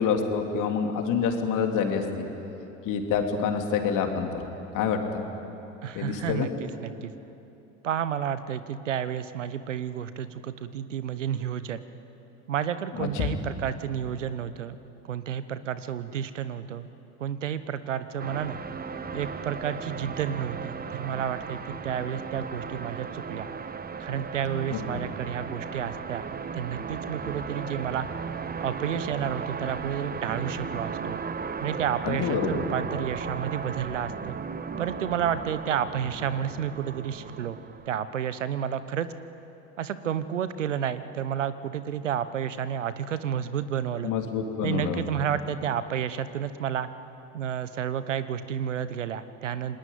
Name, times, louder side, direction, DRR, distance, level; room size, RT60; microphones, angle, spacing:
voice 1, 0.0-2.2 2.8-4.4 4.7-5.2 5.9-6.5 13.0-13.4 24.7-25.0 32.0-32.6 44.0-45.0, left 6 dB, 55° left, 4 dB, 3.5 m, -27 dB
voice 2, 5.8-7.1 7.8-11.8 12.5-14.8 15.0-16.9 17.2-18.6 19.1-23.5 24.0-26.3 26.5-28.1 28.6-31.2 31.6-34.4 34.8-37.6 37.9-39.1 39.8-44.1 44.6-46.9 47.3-49.8, right 9 dB, 90° right, 13 dB, 1.1 m, -31 dB
sound 1, 18.2-38.1, right 5 dB, 25° right, 1.4 m, -36 dB
28.5 x 20.0 x 9.3 m, 2.9 s
hypercardioid pair, 70°, 36 cm